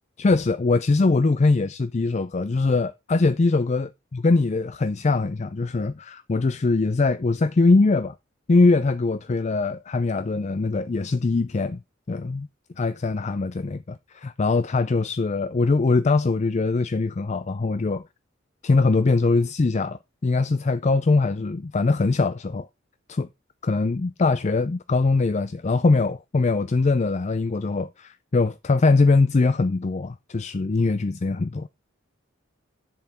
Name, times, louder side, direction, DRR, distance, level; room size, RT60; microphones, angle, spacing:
voice 1, 0.2-8.1 8.5-11.8 12.1-12.5 12.8-18.0 18.6-22.7 23.1-23.3 23.6-31.7, left 3 dB, 35° left, 0.4 m, -22 dB
7.7 x 7.2 x 4.4 m
head